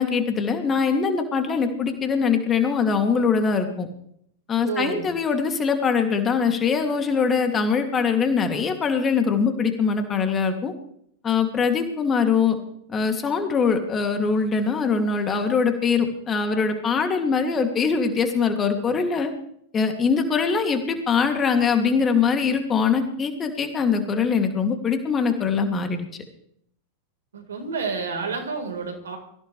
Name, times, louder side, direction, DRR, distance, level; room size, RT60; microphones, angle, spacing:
voice 1, 0.0-3.9 4.5-10.7 11.2-12.6 12.9-19.3 19.7-26.0, left 5 dB, 20° left, 5 dB, 2.5 m, -22 dB
voice 2, 4.6-5.1 27.3-29.2, right 5 dB, 65° right, 4 dB, 4.1 m, -29 dB
23.5 x 15.5 x 3.3 m, 0.68 s
figure-of-eight pair, 90°, 0 cm